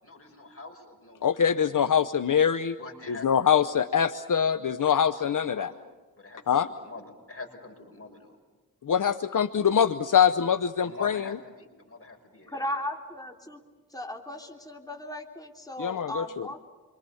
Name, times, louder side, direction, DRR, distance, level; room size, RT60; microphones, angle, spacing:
voice 1, 0.0-1.8 2.8-3.8 4.9-5.8 6.2-8.4 10.8-12.6, left 3 dB, 40° left, 3 dB, 5.8 m, -45 dB
voice 2, 1.2-2.8 3.1-5.7 6.5-6.7 8.8-11.2 15.8-16.5, left 8 dB, 65° left, 10 dB, 0.8 m, -24 dB
voice 3, 12.5-13.6 13.9-16.6, left 1 dB, 10° left, 1 dB, 3.2 m, -36 dB
28.0 x 25.0 x 7.1 m, 1.3 s
cardioid pair, 55°, 34 cm